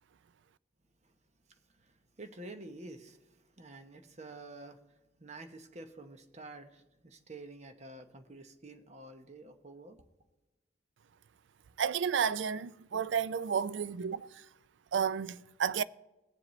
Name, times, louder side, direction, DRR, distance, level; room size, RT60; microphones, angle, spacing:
voice 1, 1.5-10.0, right 2 dB, 35° right, 0.9 m, -49 dB
voice 2, 11.8-14.4 14.9-15.8, right 7 dB, 70° right, 0.4 m, -32 dB
20.5 x 7.5 x 3.1 m
head